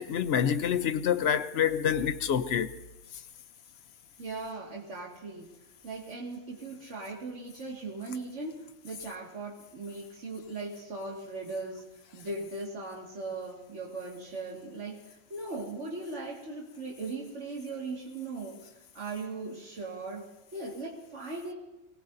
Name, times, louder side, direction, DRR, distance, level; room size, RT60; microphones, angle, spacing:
voice 1, 0.0-2.7, left 8 dB, 65° left, 0.9 m, -27 dB
voice 2, 4.2-5.5 5.8-11.8 12.1-21.5, right 3 dB, 70° right, 2.3 m, -39 dB
24.5 x 18.5 x 2.7 m
omnidirectional pair, 1.3 m